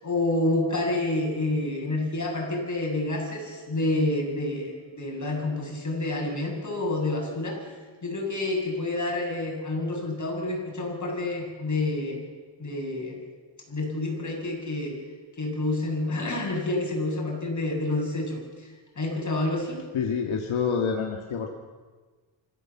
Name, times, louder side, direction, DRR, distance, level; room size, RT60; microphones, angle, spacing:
voice 1, 0.0-7.7 8.0-12.2 12.6-13.2 13.7-15.0 15.4-18.7 19.0-19.8, left 2 dB, 40° left, 0 dB, 7.6 m, -28 dB
voice 2, 19.9-21.5, left 6 dB, 80° left, 2 dB, 1.9 m, -27 dB
26.0 x 15.0 x 7.3 m, 1.4 s
cardioid pair, 85°, 47 cm